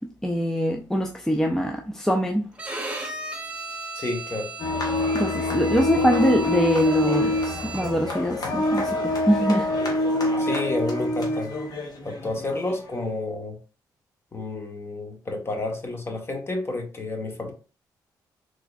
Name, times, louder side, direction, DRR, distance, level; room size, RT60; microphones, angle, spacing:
voice 1, 0.2-2.4 5.2-9.7, equal, 5° left, 0.5 m, -23 dB
Bowed string instrument, 2.6-8.1, right 3 dB, 15° right, 1.0 m, -36 dB
voice 2, 3.9-4.5 10.4-11.6 12.0-13.6 14.3-17.5, left 2 dB, 30° left, 1.2 m, -30 dB
sound 1, 4.6-12.9, left 2 dB, 55° left, 1.1 m, -26 dB
3.6 x 3.3 x 2.4 m
cardioid pair, 80°, 8 cm